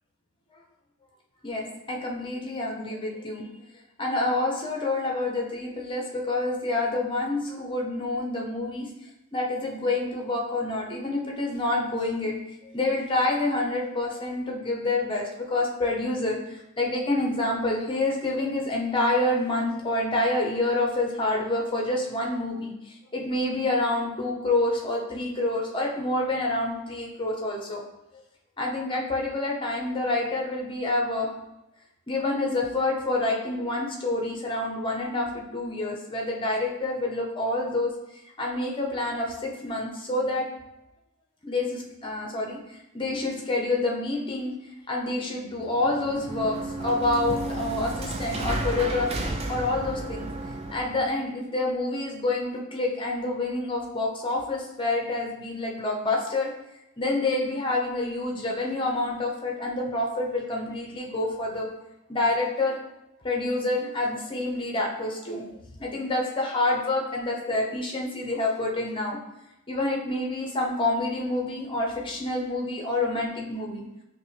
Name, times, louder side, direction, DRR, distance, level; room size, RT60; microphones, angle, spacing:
voice 1, 1.4-3.5 4.0-8.9 9.3-12.4 12.7-27.8 28.6-31.4 32.1-37.9 38.4-40.5 41.4-44.6 44.9-50.3 50.7-56.5 57.0-61.7 62.1-62.8 63.2-69.2 69.7-73.8, left 2 dB, 20° left, 0 dB, 0.6 m, -28 dB
sound 1, 45.6-51.1, right 2 dB, 25° right, 0.3 m, -32 dB
5.2 x 2.1 x 3.2 m, 0.91 s
head